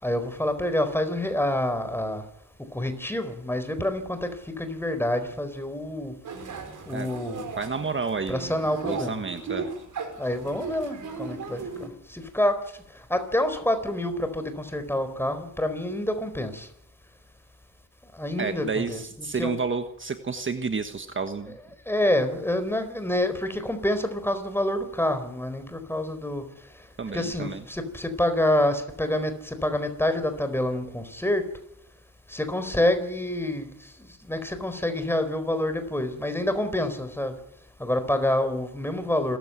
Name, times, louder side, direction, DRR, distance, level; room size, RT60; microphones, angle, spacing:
voice 1, 0.0-2.2 2.7-6.1 6.9-7.5 8.3-9.2 10.2-12.6 13.1-16.7 18.1-19.0 19.3-19.5 21.9-26.4 27.1-31.4 32.3-33.7 34.2-37.3 37.8-39.4, left 1 dB, 5° left, 9 dB, 4.3 m, -27 dB
sound 1, 6.2-11.9, right 5 dB, 70° right, 5.4 m, -37 dB
voice 2, 7.6-9.7 18.4-21.6 27.0-27.6, right 4 dB, 40° right, 8 dB, 1.5 m, -30 dB
27.5 x 14.5 x 9.2 m, 0.75 s
cardioid pair, 95°, 32 cm